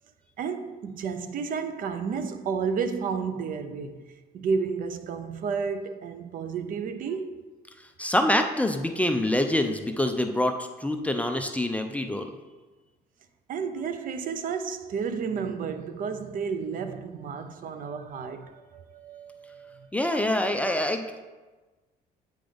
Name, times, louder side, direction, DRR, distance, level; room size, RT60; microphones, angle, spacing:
voice 1, 0.4-7.4 13.5-19.9, right 5 dB, 55° right, 0.5 m, -32 dB
voice 2, 8.0-12.3 19.9-21.2, left 1 dB, 10° left, 0.4 m, -26 dB
8.6 x 3.7 x 3.4 m
cardioid pair, 110°, 17 cm